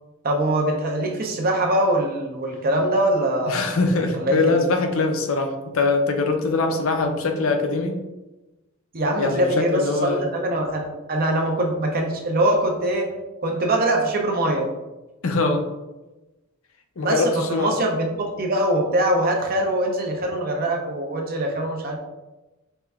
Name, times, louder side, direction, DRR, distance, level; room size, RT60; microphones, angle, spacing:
voice 1, 0.2-3.7 4.2-4.5 8.9-13.1 13.4-14.7 17.0-22.0, right 1 dB, 45° right, 2 dB, 0.7 m, -23 dB
voice 2, 3.5-8.0 9.2-10.3 15.2-15.6 17.0-17.7, left 3 dB, 70° left, 5 dB, 0.5 m, -22 dB
5.5 x 3.2 x 2.3 m, 1.1 s
head